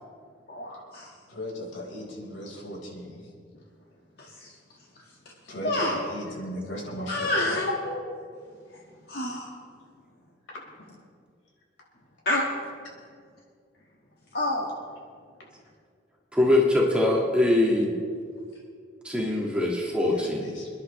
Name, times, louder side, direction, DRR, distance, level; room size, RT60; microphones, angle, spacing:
voice 1, 0.5-1.1 4.2-4.5 5.6-6.0 7.1-8.0 9.1-9.5 12.3-12.4 14.3-14.7, left 1 dB, 55° left, -4 dB, 1.7 m, -28 dB
voice 2, 1.3-3.2 5.5-7.5 20.0-20.7, equal, 85° left, -3 dB, 4.6 m, -37 dB
voice 3, 16.3-17.9 19.0-20.5, left 1 dB, 5° right, -3 dB, 2.0 m, -22 dB
29.0 x 10.5 x 3.2 m, 2.1 s
head